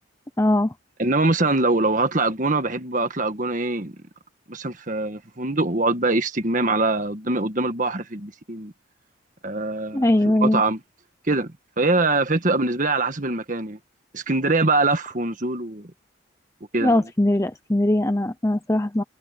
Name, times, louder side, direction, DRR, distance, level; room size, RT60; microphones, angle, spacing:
voice 1, 0.4-0.7 9.9-10.6 16.8-19.0, left 1 dB, 15° left, 0.7 m, -20 dB
voice 2, 1.0-3.9 4.5-8.7 9.4-10.8 11.3-13.8 14.1-15.9 16.7-17.0, right 2 dB, 40° right, 1.6 m, -23 dB
head